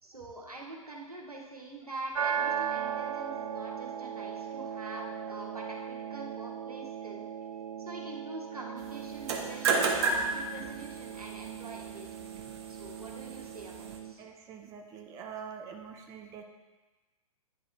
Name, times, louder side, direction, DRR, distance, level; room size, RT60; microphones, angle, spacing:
voice 1, 0.0-7.2 7.8-12.1 12.7-14.2, right 2 dB, 85° right, -1 dB, 1.4 m, -45 dB
sound 1, 2.1-14.1, right 8 dB, 70° right, 0.5 m, -38 dB
sound 2, 9.1-14.0, right 4 dB, 45° right, 0.9 m, -33 dB
voice 2, 14.2-16.4, right 7 dB, 15° right, 3 dB, 0.5 m, -45 dB
9.8 x 5.0 x 2.6 m, 1.2 s
figure-of-eight pair, 115°, 19 cm